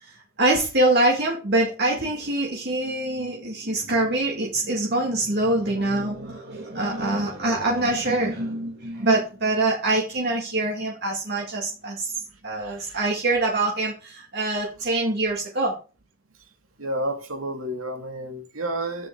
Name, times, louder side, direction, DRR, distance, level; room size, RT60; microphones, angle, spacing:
voice 1, 0.4-12.1 12.4-15.7, right 2 dB, 50° right, 2.1 m, -24 dB
voice 2, 12.6-13.0 16.8-19.1, right 1 dB, 75° right, 2.5 m, -30 dB
10.5 x 7.7 x 3.8 m
head